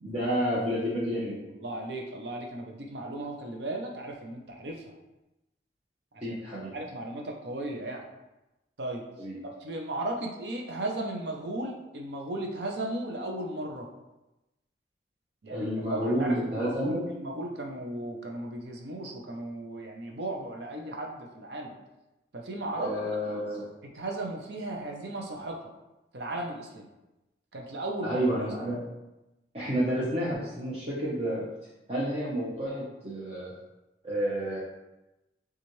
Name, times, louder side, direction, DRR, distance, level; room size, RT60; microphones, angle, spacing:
voice 1, 0.0-1.4 6.2-6.7 9.2-9.3 15.5-17.1 22.7-23.6 28.0-28.8 29.5-31.4 31.9-33.5 34.0-34.6, equal, 35° right, -8 dB, 0.9 m, -30 dB
voice 2, 1.5-5.0 6.1-6.4 6.7-8.0 8.8-9.0 9.4-13.9 15.4-21.8 22.3-22.9 23.3-23.4 23.8-25.7 26.1-26.9 27.5-28.5, right 1 dB, 70° right, 1 dB, 0.7 m, -36 dB
7.0 x 2.4 x 3.1 m, 0.99 s
head